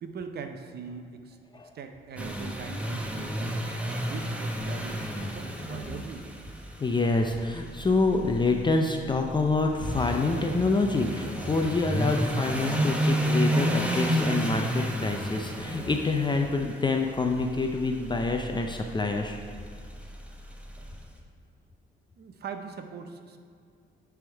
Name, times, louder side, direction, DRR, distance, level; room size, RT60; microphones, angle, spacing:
voice 1, 0.0-1.4 1.7-3.7 4.0-6.3 22.2-23.4, right 5 dB, 55° right, 7 dB, 0.7 m, -41 dB
sound 1, 2.2-21.0, right 1 dB, 5° right, 0.9 m, -31 dB
voice 2, 6.8-19.4, left 3 dB, 25° left, 3 dB, 0.5 m, -27 dB
9.7 x 3.5 x 4.5 m, 2.2 s
cardioid pair, 90°, 20 cm